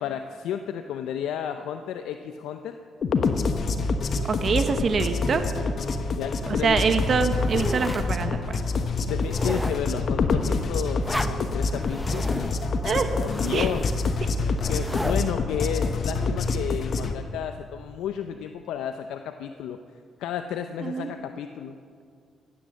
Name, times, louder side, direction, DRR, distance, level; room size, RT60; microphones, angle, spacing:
voice 1, 0.0-2.8 6.1-6.8 8.4-8.6 9.1-12.5 13.1-13.8 14.7-19.8 20.2-21.8, left 9 dB, 85° left, 7 dB, 0.6 m, -32 dB
sound 1, 3.0-17.1, left 3 dB, 55° left, 1.2 m, -26 dB
voice 2, 4.2-5.4 6.5-8.6 12.8-13.1 13.5-13.7 20.8-21.1, right 5 dB, 50° right, 8 dB, 1.1 m, -25 dB
sound 2, 7.2-8.1 8.7-8.8 9.2-9.9 11.0-11.4 11.8-15.3, equal, ahead, 0.8 m, -34 dB
16.0 x 10.5 x 7.4 m, 2.3 s
cardioid pair, 90°, 0 cm